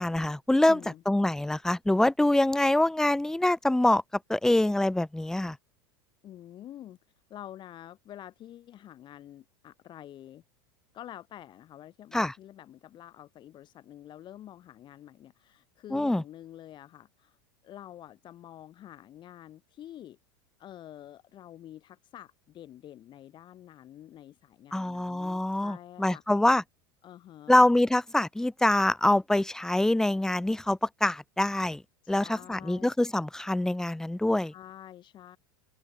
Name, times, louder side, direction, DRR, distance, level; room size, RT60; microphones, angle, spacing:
voice 1, 0.0-0.8 1.1-4.0 4.3-5.6 12.1-12.3 15.9-16.2 24.7-26.6 27.5-31.8 32.1-34.5, left 1 dB, 5° left, 0.9 m, -25 dB
voice 2, 0.7-1.0 6.2-7.0 7.3-10.4 10.9-17.4 17.6-20.2 20.6-26.2 27.0-27.6 32.0-32.9 34.5-35.4, left 12 dB, 40° left, 5.0 m, -48 dB
open air
hypercardioid pair, 100°, 12 cm